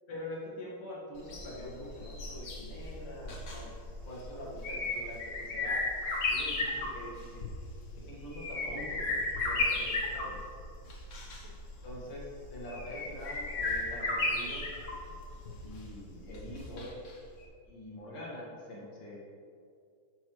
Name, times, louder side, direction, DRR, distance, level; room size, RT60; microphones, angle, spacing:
voice 1, 0.1-3.7 4.0-5.8 6.3-7.4 8.0-10.4 11.8-14.7 15.6-16.9 17.7-19.2, left 1 dB, 90° left, -5 dB, 2.8 m, -44 dB
sound 1, 1.2-17.1 17.4-17.5, left 2 dB, 45° left, 1.2 m, -35 dB
9.6 x 6.5 x 3.2 m, 2.3 s
omnidirectional pair, 2.3 m